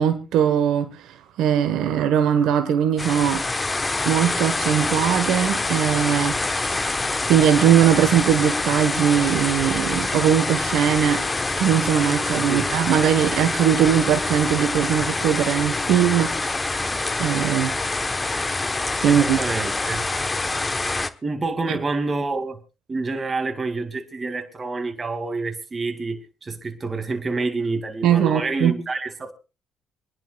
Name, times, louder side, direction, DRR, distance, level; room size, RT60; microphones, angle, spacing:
voice 1, 0.0-3.5 4.0-6.4 7.3-11.3 11.6-16.3 17.2-17.8 19.0-19.4 28.0-28.7, right 9 dB, 75° right, 1.2 m, -20 dB
sound 1, 3.0-21.1, left 2 dB, 20° left, 1.1 m, -25 dB
voice 2, 12.5-13.1 19.1-20.1 21.2-22.6 22.9-29.3, right 3 dB, 35° right, 2.3 m, -28 dB
26.5 x 11.0 x 2.3 m
supercardioid pair, 70°, 0 cm